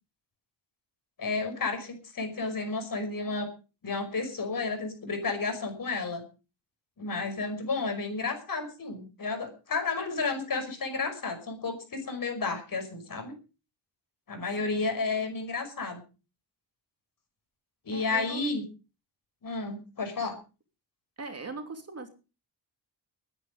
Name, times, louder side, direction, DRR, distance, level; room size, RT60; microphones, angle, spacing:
voice 1, 1.2-3.5 3.8-6.2 7.0-13.3 14.3-16.0 17.9-18.6 19.4-20.4, left 3 dB, 50° left, 6 dB, 5.6 m, -32 dB
voice 2, 17.9-18.5 21.2-22.1, right 3 dB, 35° right, 6 dB, 3.1 m, -40 dB
20.0 x 10.0 x 5.1 m, 0.34 s
cardioid pair, 90°, 44 cm